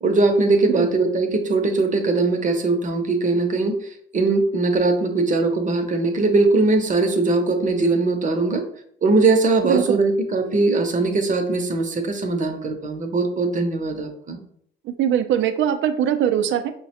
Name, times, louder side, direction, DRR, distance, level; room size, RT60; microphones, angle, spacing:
voice 1, 0.0-3.8 4.1-8.6 9.0-14.4, right 3 dB, 40° right, 5 dB, 0.7 m, -20 dB
voice 2, 9.6-10.0 14.9-16.7, right 9 dB, 75° right, 9 dB, 0.4 m, -21 dB
5.4 x 2.1 x 2.9 m, 0.65 s
cardioid pair, 90°, 20 cm